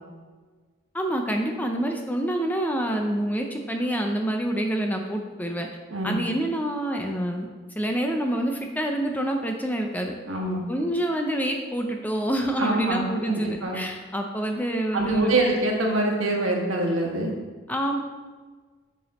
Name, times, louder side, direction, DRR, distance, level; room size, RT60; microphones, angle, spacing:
voice 1, 0.9-5.7 6.0-7.5 7.8-10.1 10.7-15.5 17.7-18.0, right 1 dB, 10° left, 3 dB, 0.6 m, -27 dB
voice 2, 10.3-10.7 12.6-13.8 14.9-17.3, right 2 dB, 90° right, 0 dB, 1.5 m, -25 dB
7.6 x 5.1 x 4.2 m, 1.4 s
head